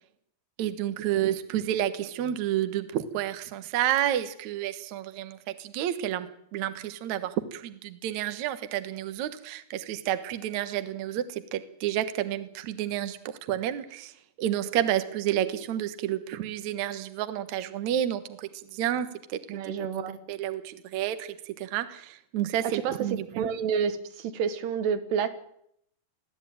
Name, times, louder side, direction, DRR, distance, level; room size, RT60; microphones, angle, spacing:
voice 1, 0.6-13.2 13.5-14.1 14.4-19.7 20.3-23.5, right 11 dB, 60° right, 10 dB, 2.1 m, -30 dB
voice 2, 19.5-20.2 22.6-23.0 23.3-25.3, right 7 dB, 85° right, 11 dB, 3.5 m, -29 dB
21.5 x 14.5 x 9.2 m, 0.73 s
omnidirectional pair, 4.6 m